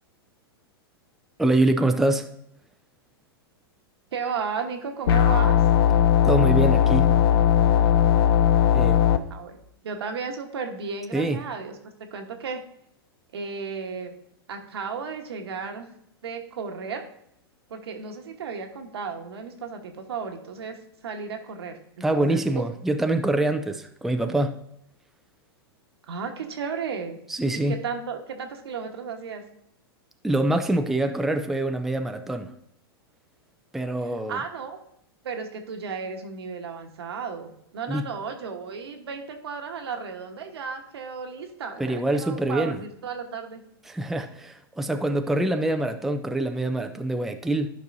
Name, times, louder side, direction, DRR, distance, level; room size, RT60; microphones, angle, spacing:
voice 1, 1.4-2.3 6.2-7.1 8.7-9.1 11.1-11.4 22.0-24.5 27.3-27.7 30.2-32.5 33.7-34.4 37.9-38.1 41.8-42.8 43.9-47.7, right 1 dB, ahead, 6 dB, 0.4 m, -25 dB
voice 2, 4.1-5.6 9.3-9.6 9.8-11.7 12.0-12.6 13.3-14.1 14.5-15.9 16.2-17.0 17.7-22.6 26.1-27.2 27.5-29.4 34.0-34.8 35.2-43.6, right 5 dB, 80° right, 4 dB, 1.2 m, -34 dB
sound 1, 5.1-9.2, left 9 dB, 65° left, 0.6 m, -18 dB
12.0 x 5.4 x 2.6 m, 0.75 s
hypercardioid pair, 120°, 13 cm